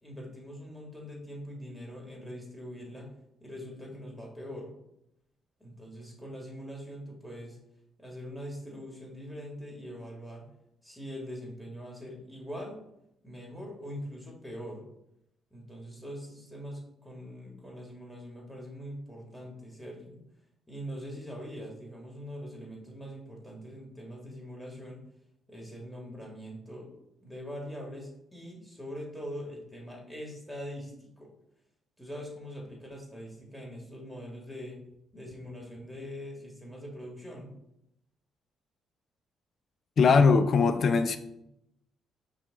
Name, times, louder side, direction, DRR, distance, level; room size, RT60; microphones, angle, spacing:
voice 1, 0.0-3.1 3.4-4.7 5.6-7.6 8.0-10.5 10.8-12.8 13.2-14.8 15.5-20.2 20.7-25.0 25.5-26.9 27.2-31.3 32.0-34.8 35.1-37.5, equal, ahead, -1 dB, 1.6 m, -42 dB
voice 2, 40.0-41.2, left 5 dB, 50° left, 10 dB, 0.4 m, -21 dB
5.7 x 2.4 x 3.7 m, 0.80 s
cardioid pair, 90°, 0 cm